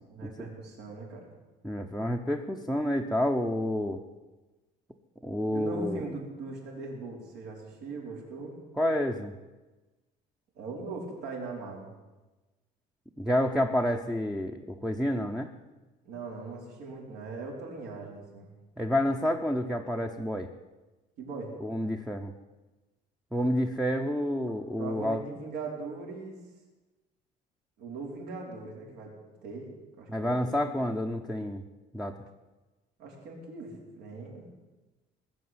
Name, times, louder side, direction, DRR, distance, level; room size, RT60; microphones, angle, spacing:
voice 1, 0.1-1.3 5.5-8.6 10.5-11.9 16.0-18.5 21.2-21.6 24.8-26.4 27.8-29.1 29.4-30.9 33.0-34.5, right 3 dB, 75° right, -1 dB, 4.9 m, -40 dB
voice 2, 1.6-4.0 5.2-6.0 8.8-9.3 13.2-15.5 18.8-20.5 21.6-22.3 23.3-25.2 30.1-31.6 31.9-32.2, equal, ahead, 3 dB, 0.8 m, -29 dB
19.5 x 7.8 x 9.5 m, 1.2 s
cardioid pair, 160°, 17 cm